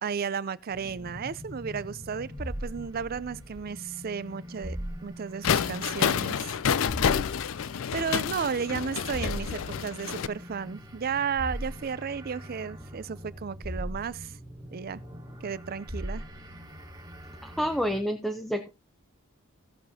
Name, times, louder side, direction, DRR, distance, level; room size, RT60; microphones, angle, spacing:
voice 1, 0.0-4.8 5.0-6.6 7.9-14.4 14.7-15.0 15.4-16.2, right 6 dB, 45° right, 0.4 m, -33 dB
sound 1, 0.7-18.0, equal, 20° right, 1.4 m, -41 dB
sound 2, 5.4-10.3, left 7 dB, 65° left, 0.4 m, -28 dB
voice 2, 17.4-18.7, equal, ahead, 0.7 m, -29 dB
16.5 x 6.7 x 2.7 m
head